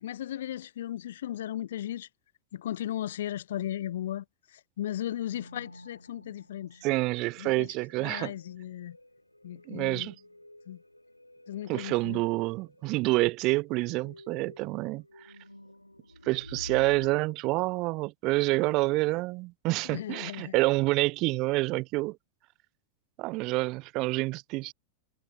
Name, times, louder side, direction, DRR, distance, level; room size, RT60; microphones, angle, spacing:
voice 1, 0.0-2.1 2.5-4.2 4.5-6.8 7.4-7.7 8.0-9.0 9.4-10.1 10.7-10.8 11.5-12.2 19.8-20.5, left 12 dB, 60° left, 0.3 m, -36 dB
sound 1, 5.0-17.1, left 1 dB, 85° left, 1.7 m, -50 dB
voice 2, 6.8-8.3 9.7-10.1 11.7-15.3 16.2-22.2 23.2-24.7, right 22 dB, 40° right, 0.5 m, -28 dB
figure-of-eight pair, 90°, 0 cm